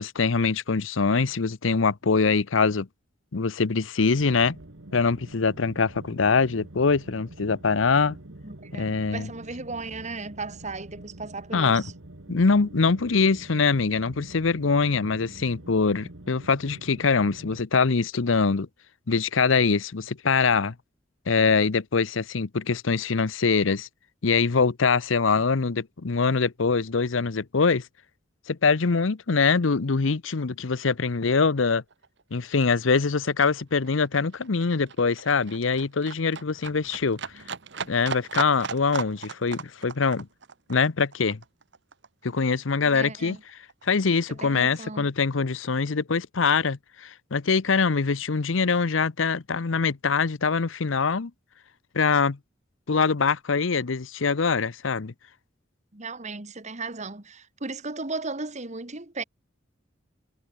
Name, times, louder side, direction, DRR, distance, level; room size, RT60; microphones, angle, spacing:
voice 1, 0.0-2.9 3.3-4.6 4.9-8.2 8.7-9.3 11.5-11.8 12.3-18.7 19.1-20.7 21.3-23.9 24.2-27.8 28.5-31.8 32.3-37.2 37.9-40.3 40.7-41.4 42.2-43.4 43.8-51.3 51.9-52.4 52.9-55.1, left 4 dB, 85° left, 0.8 m, -23 dB
sound 1, 4.1-17.6, right 1 dB, 80° right, 1.9 m, -46 dB
voice 2, 8.4-11.9 42.8-43.4 44.3-45.1 55.9-59.2, right 3 dB, 35° right, 2.0 m, -36 dB
Livestock farm animals working animals, 31.5-31.6 31.7-42.7 43.0-44.1 44.4-44.5, right 5 dB, 65° right, 1.3 m, -37 dB
head